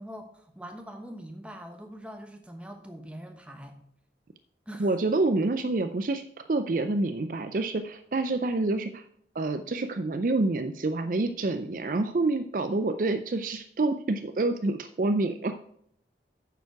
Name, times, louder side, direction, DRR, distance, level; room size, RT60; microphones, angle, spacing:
voice 1, 0.0-3.8 4.7-4.9, equal, 5° right, 4 dB, 1.1 m, -43 dB
voice 2, 4.8-6.2 6.5-9.0 9.3-15.5, right 2 dB, 50° right, 8 dB, 0.4 m, -27 dB
9.1 x 6.9 x 4.7 m, 0.68 s
head